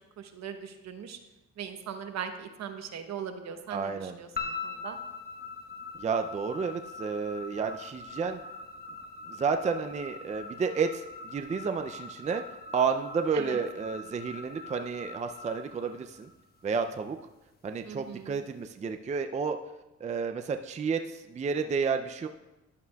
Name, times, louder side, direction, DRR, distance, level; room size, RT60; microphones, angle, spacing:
voice 1, 0.2-1.2 1.6-5.0 13.3-13.6 17.8-18.4, right 7 dB, 60° right, 7 dB, 1.0 m, -40 dB
voice 2, 3.7-4.1 5.9-8.4 9.3-12.4 12.7-16.3 16.6-17.2 17.6-19.6 20.0-22.3, right 5 dB, 25° right, 6 dB, 0.4 m, -31 dB
sound 1, 4.4-16.7, left 4 dB, 30° left, 1.1 m, -42 dB
11.5 x 8.3 x 2.3 m, 0.99 s
cardioid pair, 90°, 30 cm